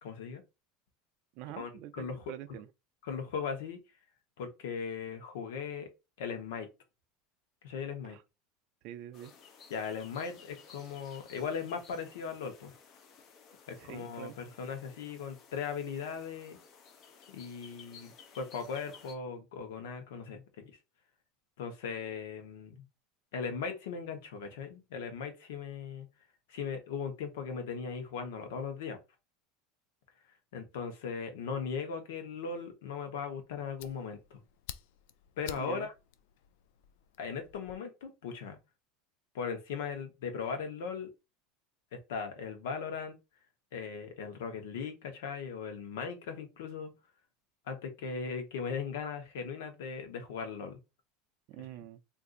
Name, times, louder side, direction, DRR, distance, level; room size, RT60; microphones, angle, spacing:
voice 1, 0.0-0.4 1.6-2.2 3.0-3.8 4.4-5.9 6.2-6.7 7.6-8.2 9.7-12.7 13.7-16.6 17.3-20.8 21.6-22.7 23.3-26.1 26.5-29.0 30.5-34.4 35.4-35.9 37.2-38.6 39.3-41.1 41.9-43.1 43.7-46.9 47.7-50.8, left 6 dB, 90° left, 0.9 m, -38 dB
voice 2, 1.3-2.7 8.1-8.2 8.8-9.3 13.8-14.4 35.6-35.9 51.5-52.0, right 13 dB, 50° right, 0.4 m, -45 dB
sound 1, 9.1-19.2, left 6 dB, 35° left, 0.6 m, -56 dB
Fire, 33.2-37.8, left 11 dB, 70° left, 0.3 m, -51 dB
2.6 x 2.5 x 3.8 m
supercardioid pair, 150°, 0 cm